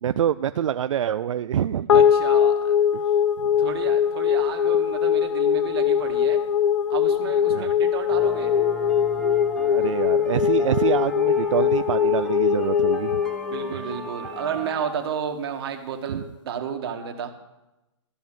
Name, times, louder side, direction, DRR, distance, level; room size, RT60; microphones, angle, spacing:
voice 1, 0.0-2.0 2.9-3.0 7.5-7.7 9.7-13.2 13.7-13.9 16.1-16.2, right 9 dB, 85° right, 12 dB, 0.4 m, -26 dB
sound 1, 1.9-14.4, left 8 dB, 75° left, 0.9 m, -21 dB
voice 2, 1.9-2.7 3.6-6.4 6.9-8.5 13.5-17.3, right 7 dB, 55° right, 4 dB, 1.7 m, -32 dB
sound 2, 8.1-14.7, right 2 dB, 5° left, 0.9 m, -38 dB
13.0 x 5.3 x 9.0 m, 1.0 s
hypercardioid pair, 155°, 16 cm